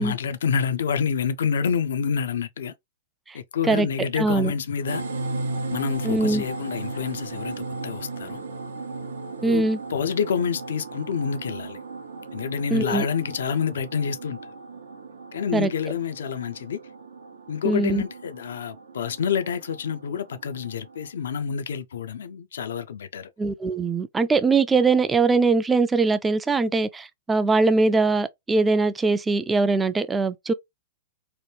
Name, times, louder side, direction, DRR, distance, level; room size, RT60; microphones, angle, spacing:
voice 1, 0.0-2.7 3.3-5.0 5.7-8.4 9.4-11.8 12.3-14.4 15.3-16.8 17.5-23.3, left 7 dB, 70° left, 0.4 m, -28 dB
voice 2, 4.2-4.5 6.0-6.4 9.4-9.8 12.7-13.1 15.5-15.7 17.6-18.0 23.4-30.5, right 3 dB, 15° right, 0.3 m, -21 dB
sound 1, 4.9-21.1, right 3 dB, 80° right, 0.6 m, -36 dB
3.0 x 2.2 x 3.2 m
hypercardioid pair, 110°, 0 cm